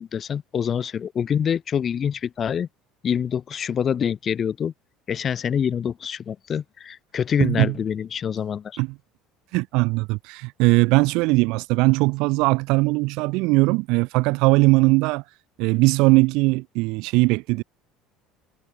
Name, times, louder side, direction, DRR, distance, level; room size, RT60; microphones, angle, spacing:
voice 1, 0.0-2.7 3.0-4.7 5.1-8.8, left 8 dB, 35° left, 0.6 m, -26 dB
voice 2, 7.4-7.7 8.8-8.9 9.5-15.2 15.6-17.6, right 25 dB, 75° right, 0.4 m, -20 dB
cardioid pair, 135°, 0 cm